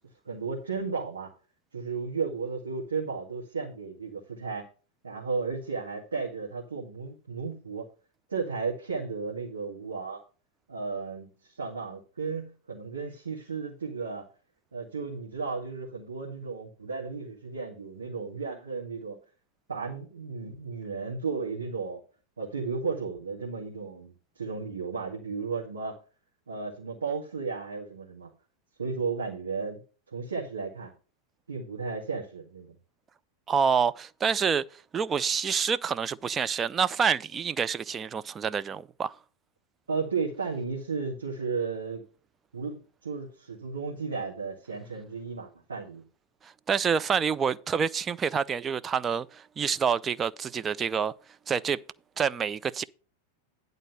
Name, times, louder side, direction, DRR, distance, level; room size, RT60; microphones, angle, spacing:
voice 1, 0.3-1.3 1.7-4.7 5.0-7.8 8.3-10.2 10.7-14.2 14.7-19.2 19.7-22.0 22.4-26.0 26.5-28.3 28.8-29.8 30.1-30.9 31.5-32.7 39.9-42.0 42.5-42.8 43.0-46.0, right 4 dB, 75° right, 2.0 m, -34 dB
voice 2, 33.5-34.6 34.9-39.1 46.4-51.1 51.5-51.8 52.2-52.8, right 6 dB, 20° right, 0.4 m, -27 dB
10.5 x 3.9 x 6.6 m
figure-of-eight pair, 90°, 0 cm